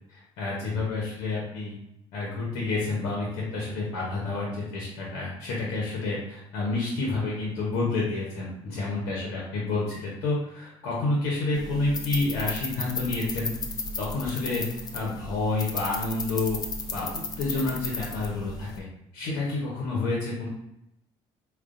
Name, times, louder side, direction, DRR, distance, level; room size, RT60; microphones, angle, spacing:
voice 1, 0.1-1.8 2.1-13.5 14.0-16.6 16.9-18.9 19.1-20.5, left 3 dB, 85° left, -4 dB, 0.9 m, -29 dB
sound 1, 11.5-18.8, left 3 dB, 30° left, 0.6 m, -35 dB
4.5 x 2.4 x 2.5 m, 0.82 s
supercardioid pair, 80°, 12 cm